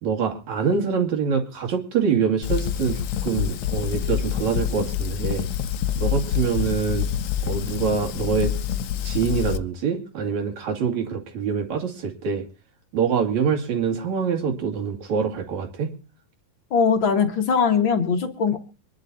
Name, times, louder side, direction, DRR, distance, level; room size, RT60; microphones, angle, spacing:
voice 1, 0.0-5.5 6.0-7.1 7.4-8.5 9.0-12.4 12.9-15.9, right 6 dB, 55° right, 3 dB, 3.5 m, -25 dB
Fire, 2.4-9.6, left 10 dB, 75° left, 1.6 m, -26 dB
voice 2, 16.7-18.6, left 6 dB, 50° left, 5 dB, 1.6 m, -21 dB
25.5 x 11.5 x 2.7 m, 0.35 s
omnidirectional pair, 4.1 m